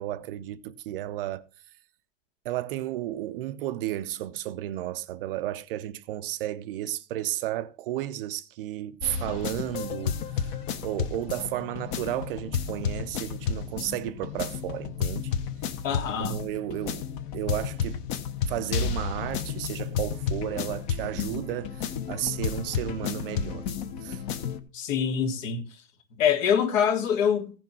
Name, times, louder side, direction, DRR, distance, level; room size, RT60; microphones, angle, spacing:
voice 1, 0.0-1.5 2.4-10.5 10.8-15.3 15.9-17.0 17.3-18.0 18.5-23.7 24.0-24.2, right 13 dB, 40° right, 0.5 m, -33 dB
sound 1, 9.0-24.6, left 7 dB, 35° left, 0.9 m, -32 dB
voice 2, 15.8-16.4 24.7-25.6 26.2-27.5, left 7 dB, 65° left, 2.1 m, -25 dB
15.5 x 6.0 x 4.4 m
supercardioid pair, 165°, 42 cm